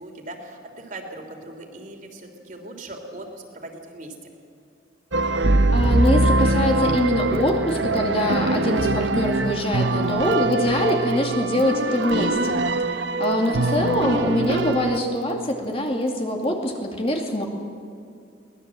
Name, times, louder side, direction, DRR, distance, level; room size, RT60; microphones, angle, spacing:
voice 1, 0.0-3.3 3.5-4.1 13.2-13.7, right 1 dB, 45° right, 3 dB, 3.1 m, -39 dB
sound 1, 5.1-15.0, right 2 dB, 80° right, 1.0 m, -22 dB
voice 2, 5.3-12.6 12.9-17.5, left 1 dB, 30° left, 2 dB, 2.4 m, -24 dB
23.0 x 19.0 x 7.7 m, 2.5 s
head